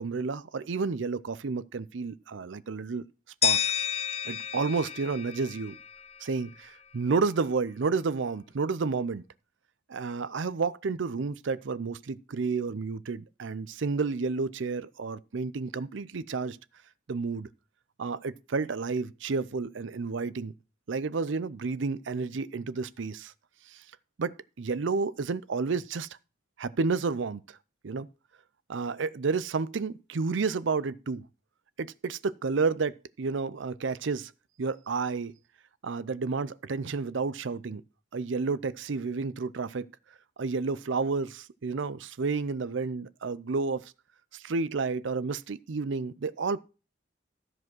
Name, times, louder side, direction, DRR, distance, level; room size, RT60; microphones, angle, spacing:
voice 1, 0.0-3.0 3.4-3.6 4.3-5.8 6.2-9.2 9.9-16.6 17.1-17.5 18.0-20.5 20.9-23.3 23.7-23.8 24.2-26.1 26.6-27.6 27.8-28.1 28.7-31.3 31.8-34.3 34.6-35.3 35.8-37.8 38.1-39.9 40.4-43.9 44.3-46.6, right 4 dB, 70° right, 0.5 m, -31 dB
sound 1, 3.4-6.3, left 9 dB, 30° left, 0.5 m, -30 dB
13.0 x 5.0 x 6.0 m
head